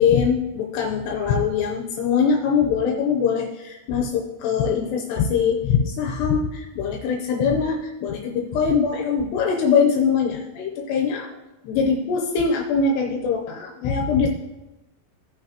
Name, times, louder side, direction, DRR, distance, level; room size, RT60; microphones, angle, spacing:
voice 1, 0.0-11.3 11.6-14.3, left 6 dB, 80° left, 1 dB, 2.7 m, -22 dB
17.0 x 5.8 x 2.9 m, 1.0 s
omnidirectional pair, 5.2 m